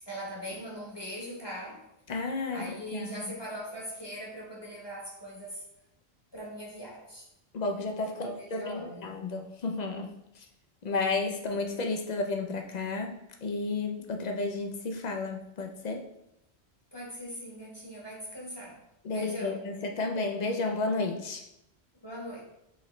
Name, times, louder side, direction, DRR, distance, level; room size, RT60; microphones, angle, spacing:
voice 1, 0.1-1.8 2.5-5.6 6.3-7.3 8.1-9.1 16.9-18.8 19.1-19.7 22.0-22.4, equal, 25° left, -3 dB, 0.9 m, -40 dB
voice 2, 2.1-2.6 2.9-3.3 7.5-10.1 10.8-13.2 13.4-16.0 19.0-21.4, left 3 dB, 55° left, 3 dB, 0.5 m, -32 dB
4.9 x 3.0 x 3.1 m, 0.83 s
omnidirectional pair, 1.1 m